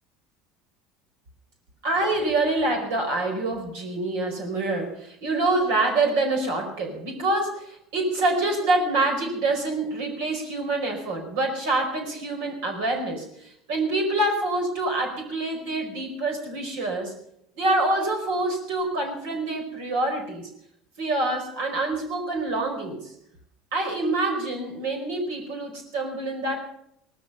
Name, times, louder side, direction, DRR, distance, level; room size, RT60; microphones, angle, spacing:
voice 1, 1.8-17.1 17.6-20.5 21.0-23.1 23.7-26.6, right 2 dB, 75° right, 3 dB, 4.8 m, -26 dB
18.5 x 13.5 x 5.6 m, 0.75 s
hypercardioid pair, 80°, 0 cm